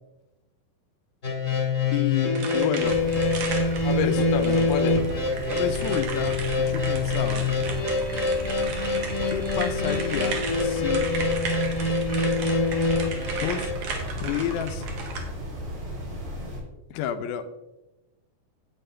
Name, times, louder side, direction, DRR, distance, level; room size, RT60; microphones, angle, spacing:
sound 1, 1.2-13.7, left 3 dB, 40° left, 1.1 m, -25 dB
voice 1, 1.9-3.0 4.0-4.2 5.5-7.5 9.3-11.1 13.3-13.7 14.2-14.9 16.9-17.4, left 9 dB, 85° left, 9 dB, 2.6 m, -30 dB
sound 2, 2.4-15.2, right 5 dB, 60° right, 2.7 m, -36 dB
voice 2, 2.6-3.1 3.8-5.0, left 4 dB, 65° left, 4 dB, 1.1 m, -29 dB
sound 3, 2.8-16.6, equal, 85° right, 5.1 m, -35 dB
11.0 x 8.5 x 3.4 m, 1.0 s
omnidirectional pair, 4.2 m